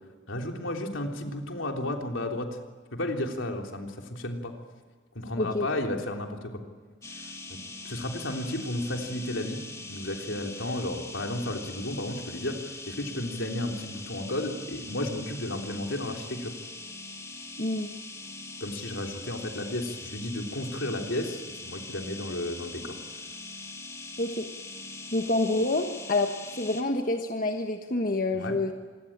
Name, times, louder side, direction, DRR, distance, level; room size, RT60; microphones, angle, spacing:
voice 1, 0.3-2.6 2.9-4.5 5.2-6.6 7.2-7.6 7.8-9.6 9.9-16.5 18.6-23.0 28.3-28.6, left 1 dB, 75° left, 3 dB, 3.5 m, -33 dB
voice 2, 5.4-5.7 17.6-17.9 24.2-24.5 25.1-28.7, left 2 dB, 45° left, 4 dB, 1.4 m, -27 dB
sound 1, 7.0-26.8, left 3 dB, 15° left, 2.4 m, -42 dB
26.0 x 22.0 x 8.9 m, 1.5 s
head